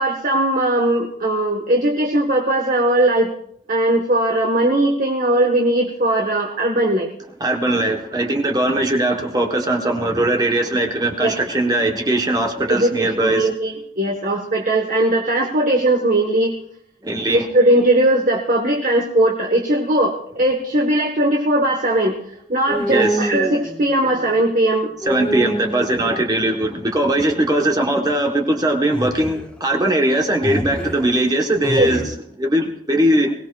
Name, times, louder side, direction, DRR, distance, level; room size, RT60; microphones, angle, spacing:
voice 1, 0.0-3.3 3.7-7.1 11.2-11.3 12.7-16.5 17.3-22.2 22.5-24.9 26.0-26.2 31.7-31.9, right 1 dB, 45° right, 1 dB, 1.3 m, -19 dB
voice 2, 7.4-13.5 17.0-17.5 22.9-23.2 25.0-32.0 32.4-33.3, right 1 dB, 20° right, 2 dB, 1.1 m, -20 dB
sound 1, 22.7-24.7 25.0-26.7 28.9-29.5 30.4-31.2 31.6-32.0, right 1 dB, 5° left, 1.4 m, -26 dB
22.5 x 17.5 x 2.4 m, 0.71 s
head